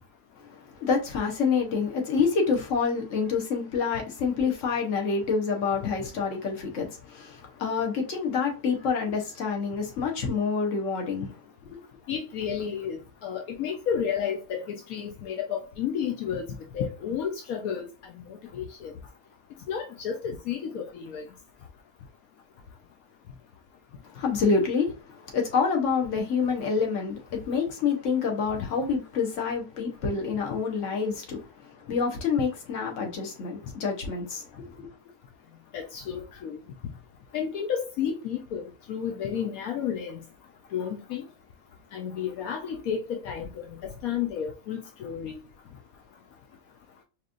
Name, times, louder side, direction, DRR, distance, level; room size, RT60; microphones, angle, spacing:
voice 1, 0.5-11.4 11.7-11.8 24.0-25.0 25.3-34.9, left 5 dB, 60° left, 1.4 m, -27 dB
voice 2, 12.1-17.8 18.1-18.9 19.7-21.3 35.7-36.6 37.3-40.2 40.7-41.3 41.9-45.4, left 8 dB, 80° left, 1.2 m, -32 dB
4.6 x 3.0 x 2.5 m
omnidirectional pair, 1.5 m